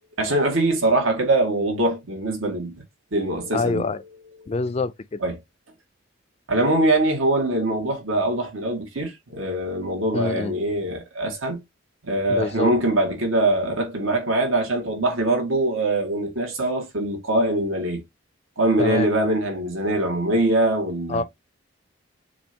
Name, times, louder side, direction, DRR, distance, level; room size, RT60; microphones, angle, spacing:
voice 1, 0.2-2.8 3.1-4.0 4.4-4.5 5.2-5.4 6.5-11.6 12.0-18.0 18.6-21.2, right 1 dB, 85° right, 1.8 m, -23 dB
voice 2, 3.5-4.0 4.5-5.2 10.1-10.5 12.3-12.7 18.8-19.3 21.1-21.2, left 3 dB, 30° left, 0.3 m, -26 dB
7.0 x 2.7 x 2.8 m
head